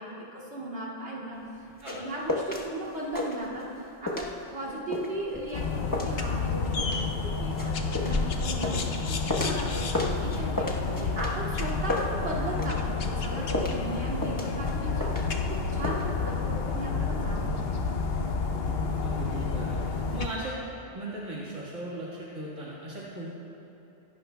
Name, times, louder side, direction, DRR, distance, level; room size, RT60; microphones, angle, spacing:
voice 1, 0.0-1.4 2.0-3.7 4.0-9.9 10.2-18.0, right 1 dB, 65° right, -5 dB, 2.6 m, -37 dB
sound 1, 1.4-2.7 2.9-3.8 4.1-9.7 9.9-12.8 13.0-15.6 15.8-16.0, left 1 dB, 15° left, 1.0 m, -33 dB
sound 2, 5.5-20.3, left 4 dB, 60° left, 0.9 m, -30 dB
voice 2, 19.0-20.6 20.9-23.3, right 1 dB, 85° right, -7 dB, 2.2 m, -38 dB
24.5 x 12.0 x 2.2 m, 2.8 s
omnidirectional pair, 1.2 m